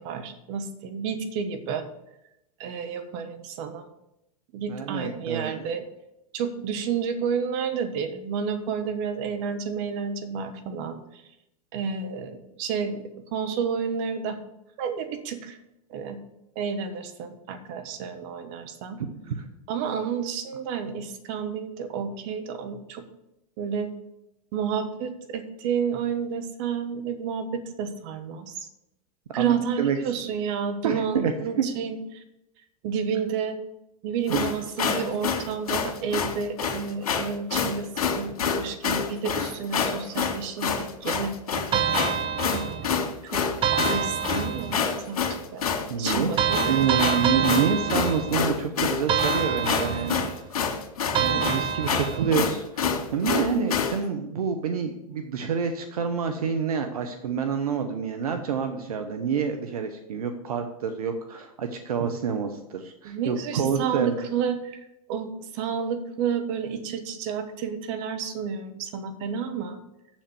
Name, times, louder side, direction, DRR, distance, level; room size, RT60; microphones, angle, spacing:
voice 1, 0.0-1.8 2.6-3.9 4.5-5.8 6.3-11.2 11.7-13.0 13.3-14.4 14.8-15.6 15.9-16.2 16.5-19.0 19.7-23.0 23.6-23.9 24.5-28.7 29.3-32.2 32.8-33.6 34.0-37.9 38.2-43.4 43.7-45.7 46.0-47.1 63.0-69.8, right 6 dB, 55° right, 7 dB, 1.5 m, -31 dB
voice 2, 4.7-5.7 19.0-19.4 29.3-30.0 30.8-31.3 34.3-34.4 45.9-46.3 46.7-50.7 51.2-64.1, right 6 dB, 80° right, 7 dB, 1.0 m, -28 dB
sound 1, 34.3-54.0, left 6 dB, 80° left, 1.9 m, -27 dB
sound 2, 41.7-43.0 43.6-44.9 46.4-48.6 49.1-50.4 51.1-52.4, right 8 dB, 30° right, 0.7 m, -27 dB
7.4 x 7.3 x 6.9 m, 0.84 s
hypercardioid pair, 100°, 19 cm